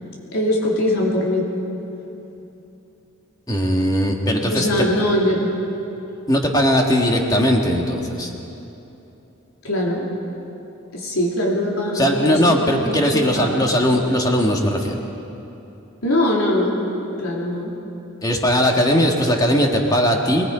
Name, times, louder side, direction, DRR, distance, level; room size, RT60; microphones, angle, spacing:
voice 1, 0.3-1.4 4.5-5.5 9.6-10.1 10.9-13.7 16.0-16.8 17.2-17.7, left 1 dB, 80° left, -3 dB, 3.2 m, -21 dB
voice 2, 3.5-4.7 6.3-8.3 11.9-15.0 18.2-20.4, equal, 15° left, 1 dB, 1.8 m, -19 dB
26.0 x 20.0 x 5.1 m, 3.0 s
head